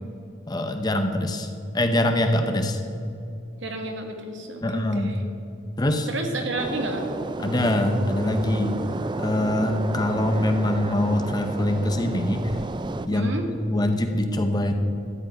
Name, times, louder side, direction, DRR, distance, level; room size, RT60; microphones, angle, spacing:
voice 1, 0.5-1.5 1.7-2.8 4.6-5.1 5.8-6.1 7.4-8.8 9.2-12.5 13.1-14.7, left 1 dB, 20° left, 6 dB, 0.7 m, -24 dB
voice 2, 3.6-5.2 6.1-7.0 13.1-13.5, right 2 dB, 65° right, 3 dB, 1.7 m, -31 dB
sound 1, 6.6-13.1, right 2 dB, 25° right, 0.3 m, -32 dB
13.0 x 5.4 x 9.3 m, 2.5 s
head